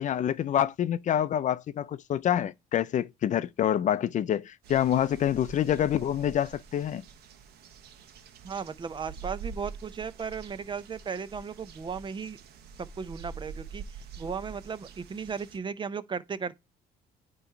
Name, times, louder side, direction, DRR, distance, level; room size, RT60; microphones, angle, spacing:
voice 1, 0.0-7.0, left 10 dB, 45° left, 0.5 m, -27 dB
sound 1, 4.6-15.6, right 5 dB, 70° right, 1.2 m, -45 dB
voice 2, 8.4-12.4 12.8-13.8 14.2-16.6, right 6 dB, 30° right, 0.6 m, -36 dB
9.2 x 3.1 x 4.4 m
cardioid pair, 110°, 17 cm